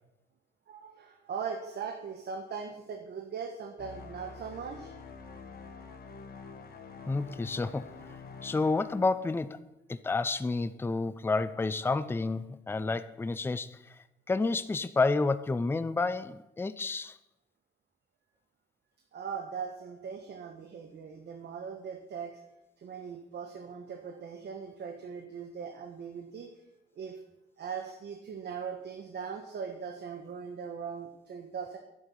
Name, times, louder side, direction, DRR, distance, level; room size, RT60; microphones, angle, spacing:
voice 1, 0.7-4.9 19.1-22.4 22.8-26.5 26.9-27.2 27.6-31.8, right 6 dB, 55° right, 1.2 m, -40 dB
sound 1, 3.8-9.6, left 4 dB, 50° left, 1.7 m, -47 dB
voice 2, 7.1-7.9 8.4-9.6 9.9-13.8 14.3-17.2, left 3 dB, 10° left, 0.5 m, -30 dB
9.7 x 8.0 x 7.0 m
cardioid pair, 90°, 20 cm